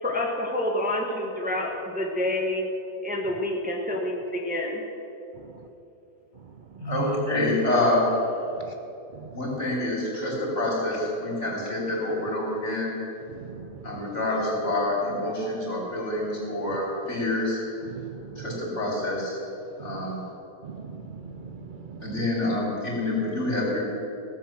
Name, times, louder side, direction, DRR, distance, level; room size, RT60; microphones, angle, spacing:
voice 1, 0.0-2.7 3.0-4.8, left 1 dB, 5° right, 0 dB, 1.2 m, -28 dB
voice 2, 6.8-8.1 9.3-13.0 13.8-17.6 18.4-19.4 19.8-20.2 22.0-23.8, left 1 dB, 50° left, -4 dB, 3.7 m, -27 dB
voice 3, 13.3-13.7 17.9-18.2 19.8-20.1 20.6-22.0, right 6 dB, 75° right, 6 dB, 0.4 m, -40 dB
17.0 x 7.4 x 7.3 m, 2.9 s
omnidirectional pair, 1.6 m